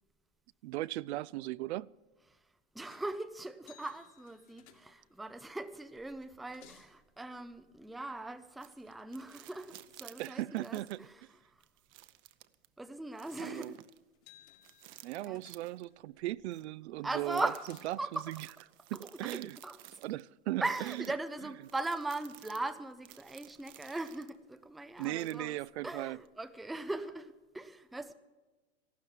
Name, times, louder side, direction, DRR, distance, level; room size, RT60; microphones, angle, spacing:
voice 1, 0.6-1.9 10.2-11.1 13.4-13.7 15.0-17.5 17.8-18.4 18.9-19.6 20.0-20.6 25.0-26.2, right 16 dB, 65° right, 0.5 m, -37 dB
voice 2, 2.3-11.7 12.8-13.8 15.2-15.4 17.0-18.3 18.9-19.8 20.6-25.6 25.8-28.1, right 2 dB, ahead, 0.4 m, -40 dB
sound 1, 2.9-3.2 3.6-5.2 6.0-7.0 13.5-13.8 14.1-16.0 17.3-18.1, left 10 dB, 65° left, 2.5 m, -61 dB
sound 2, 8.6-11.1 11.6-12.7 13.2-14.0 14.6-15.9 16.5-16.6 17.3-20.2 20.6-24.4 25.0-25.7 26.3-26.4, right 15 dB, 35° right, 0.7 m, -55 dB
14.0 x 12.5 x 7.5 m
hypercardioid pair, 130°, 35 cm